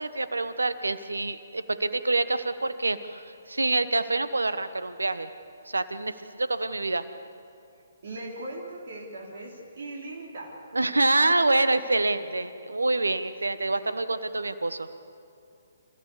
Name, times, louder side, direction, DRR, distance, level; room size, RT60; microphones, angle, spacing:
voice 1, 0.0-5.3 5.7-7.0 10.7-14.9, right 2 dB, 80° right, 13 dB, 1.3 m, -26 dB
voice 2, 8.0-10.6, right 2 dB, 55° right, -2 dB, 3.8 m, -39 dB
28.5 x 15.0 x 8.6 m, 2.6 s
figure-of-eight pair, 135°, 0 cm